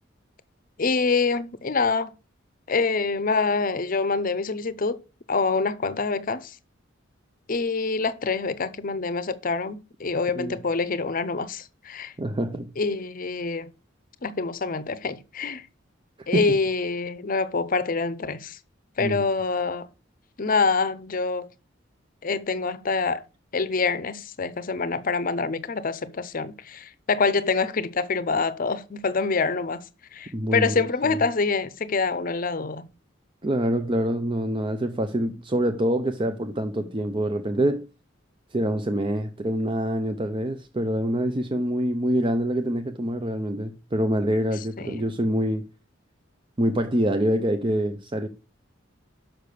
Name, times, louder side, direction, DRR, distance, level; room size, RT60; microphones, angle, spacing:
voice 1, 0.8-2.1 2.7-5.0 5.3-6.6 7.5-12.1 12.8-13.7 14.2-15.7 16.3-18.6 19.0-19.9 20.4-21.5 22.2-23.2 23.5-29.8 30.1-32.9 44.8-45.0, left 4 dB, 45° left, 0.7 m, -26 dB
voice 2, 12.2-12.7 16.2-16.4 19.0-19.2 30.3-31.2 33.4-37.8 38.5-45.6 46.6-48.3, right 1 dB, 25° right, 0.6 m, -25 dB
6.6 x 5.9 x 6.7 m
head